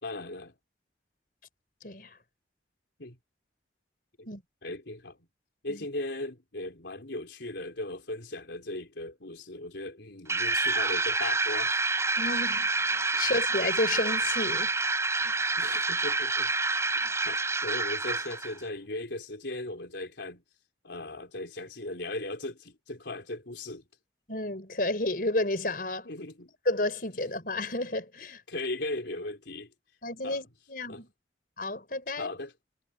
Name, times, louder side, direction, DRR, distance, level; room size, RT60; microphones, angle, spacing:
voice 1, 0.0-0.5 3.0-3.2 4.2-4.3 4.6-5.2 5.6-11.8 13.1-13.3 15.6-16.5 17.0-20.4 20.8-23.8 26.0-26.5 28.5-29.7 30.2-30.4 30.9-31.0 32.2-32.5, left 2 dB, 85° left, 4.0 m, -38 dB
voice 2, 1.8-2.2 4.3-4.4 5.7-5.8 12.2-14.7 15.2-15.4 17.0-17.1 24.3-26.1 26.7-28.4 30.0-31.1 31.6-32.3, left 2 dB, 55° left, 5.5 m, -31 dB
sound 1, 10.3-18.6, right 3 dB, 15° right, 5.1 m, -28 dB
head